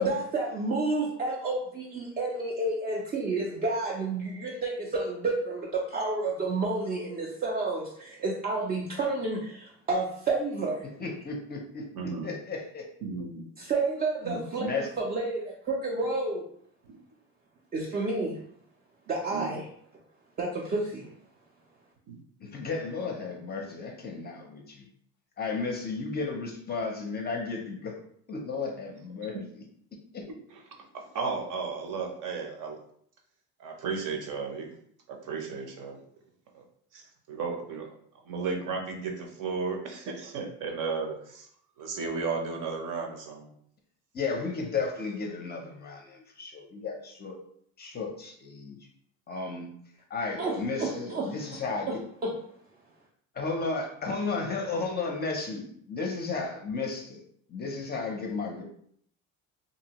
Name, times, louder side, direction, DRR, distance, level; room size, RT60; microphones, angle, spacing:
voice 1, 0.0-10.9 13.6-16.4 17.7-18.4 19.1-19.7 20.4-21.1 50.4-51.6 51.9-52.3, right 3 dB, 25° right, -2 dB, 0.4 m, -30 dB
voice 2, 11.0-12.9 14.6-14.9 22.4-24.9 25.4-28.0 28.3-29.6 30.1-30.2 44.1-47.4 47.8-48.8 49.3-49.7 50.1-51.9 53.3-57.2 57.5-58.6, left 4 dB, 25° left, 1 dB, 0.5 m, -33 dB
voice 3, 11.9-12.3 13.0-13.4 14.2-14.4 16.8-16.9 19.3-19.5 22.1-22.2 30.8-32.8 33.6-34.7 35.1-36.0 36.5-36.6 36.9-37.9 38.3-41.5 41.8-43.5, right 4 dB, 60° right, 2 dB, 0.7 m, -34 dB
2.7 x 2.6 x 2.9 m, 0.65 s
cardioid pair, 130°, 36 cm